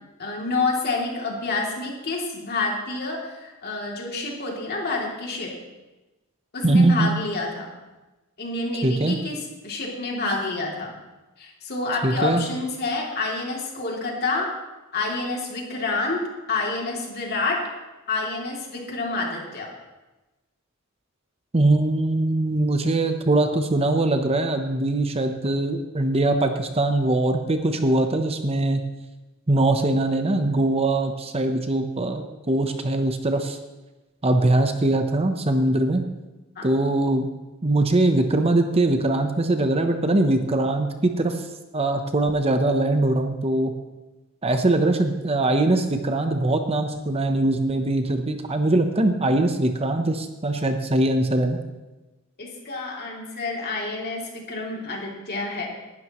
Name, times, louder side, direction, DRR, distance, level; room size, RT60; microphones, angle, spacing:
voice 1, 0.2-5.6 6.5-7.7 8.4-10.9 11.4-14.5 14.9-16.2 16.5-17.6 18.1-19.7 36.6-36.7 52.4-55.7, left 3 dB, 50° left, -1 dB, 2.9 m, -28 dB
voice 2, 6.6-7.1 8.8-9.2 12.0-12.4 21.5-28.8 29.5-33.6 34.2-36.1 36.6-37.3 37.6-41.4 41.7-43.7 44.4-51.6, right 2 dB, 30° right, 6 dB, 0.8 m, -22 dB
18.5 x 12.0 x 3.1 m, 1.1 s
head